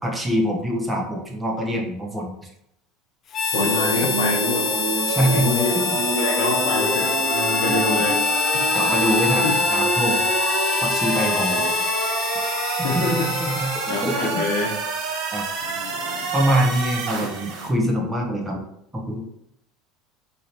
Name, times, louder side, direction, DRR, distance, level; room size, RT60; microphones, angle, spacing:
voice 1, 0.0-2.5 3.9-4.1 5.1-6.0 7.7-8.0 8.7-10.2 10.8-11.6 12.9-14.4 15.3-15.5 16.3-18.6 18.9-19.2, equal, 10° right, 0 dB, 1.0 m, -24 dB
Harmonica, 3.3-14.4, left 4 dB, 40° left, 0.5 m, -25 dB
voice 2, 3.5-4.7 5.3-8.6 9.4-9.5 11.3-11.9 12.8-13.2 13.6-14.7 15.6-16.2, left 4 dB, 75° left, -2 dB, 0.8 m, -27 dB
sound 1, 3.5-17.7, right 4 dB, 60° right, 0.9 m, -27 dB
4.7 x 3.1 x 2.9 m, 0.77 s
supercardioid pair, 100°, 0 cm